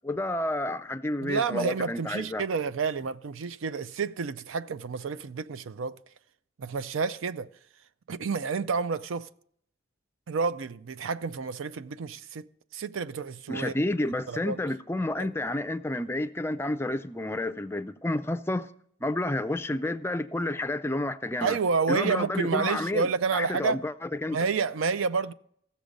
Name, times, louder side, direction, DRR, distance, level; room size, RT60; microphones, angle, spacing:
voice 1, 0.0-2.4 13.5-18.7 19.0-21.6 21.9-23.1 23.3-24.4, left 1 dB, 10° left, 0.4 m, -30 dB
voice 2, 1.2-6.0 6.6-7.5 8.1-9.3 10.3-12.5 12.7-13.7 14.1-14.6 21.4-23.8 24.3-25.3, right 5 dB, 75° right, 0.5 m, -29 dB
15.0 x 7.1 x 5.2 m
head